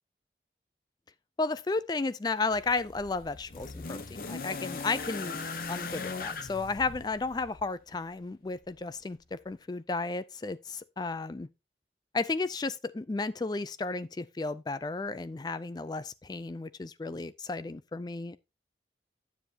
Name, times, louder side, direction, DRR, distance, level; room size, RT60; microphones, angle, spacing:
voice 1, 1.4-5.4 5.7-11.5 12.1-18.4, left 3 dB, 25° left, 0.4 m, -33 dB
sound 1, 2.5-7.7 8.8-8.9, left 4 dB, 55° left, 0.8 m, -39 dB
10.0 x 7.2 x 2.8 m
head